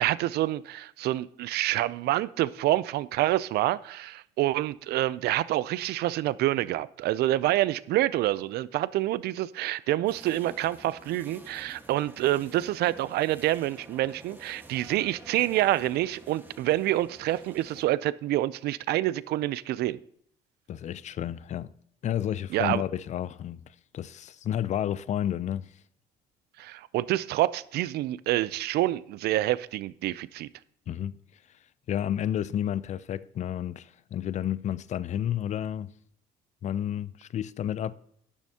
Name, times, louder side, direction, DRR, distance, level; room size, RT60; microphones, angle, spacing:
voice 1, 0.0-20.0 22.5-22.8 26.6-30.5, right 15 dB, 70° right, 0.5 m, -27 dB
sound 1, 10.0-17.8, right 2 dB, 10° right, 1.5 m, -50 dB
voice 2, 20.7-21.7 22.0-23.6 23.9-25.7 30.9-31.1 31.9-35.9 36.6-37.9, left 10 dB, 45° left, 0.4 m, -31 dB
12.5 x 10.5 x 2.9 m
cardioid pair, 110°, 17 cm